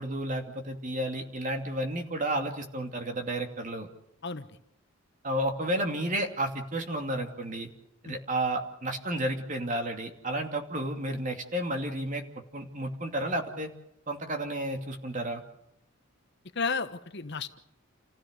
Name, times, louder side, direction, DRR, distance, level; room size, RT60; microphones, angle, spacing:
voice 1, 0.0-3.9 5.2-7.7 8.0-12.2 12.5-13.7 14.1-15.4, right 1 dB, 35° right, 5 dB, 2.6 m, -32 dB
voice 2, 16.5-17.6, left 4 dB, 55° left, 10 dB, 1.2 m, -32 dB
29.0 x 15.5 x 6.7 m, 0.78 s
head